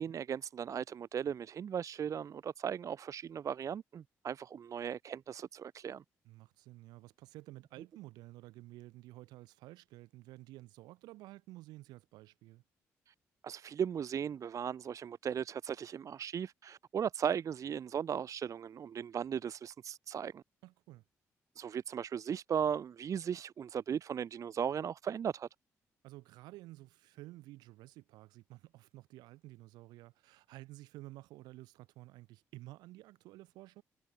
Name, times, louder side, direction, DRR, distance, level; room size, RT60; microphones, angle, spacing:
voice 1, 0.0-6.0 13.4-20.4 21.6-25.5, right 8 dB, 50° right, 0.4 m, -37 dB
voice 2, 6.2-12.6 20.6-21.0 26.0-33.8, right 18 dB, 85° right, 1.3 m, -52 dB
hypercardioid pair, 50°, 7 cm